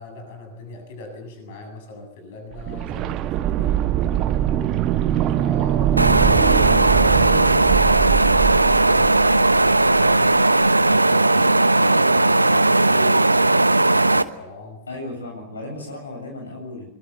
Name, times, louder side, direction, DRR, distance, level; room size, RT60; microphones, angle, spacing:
voice 1, 0.0-4.8 5.3-10.3 10.7-15.0, left 2 dB, 55° left, 6 dB, 7.8 m, -40 dB
sound 1, 2.5-10.3 10.6-10.7, right 11 dB, 35° right, 1.4 m, -23 dB
sound 2, 6.0-14.2, right 2 dB, 85° right, 1.0 m, -17 dB
voice 2, 14.9-16.9, left 2 dB, 75° left, 2 dB, 7.5 m, -35 dB
24.0 x 23.5 x 8.2 m, 0.76 s
figure-of-eight pair, 90°, 0 cm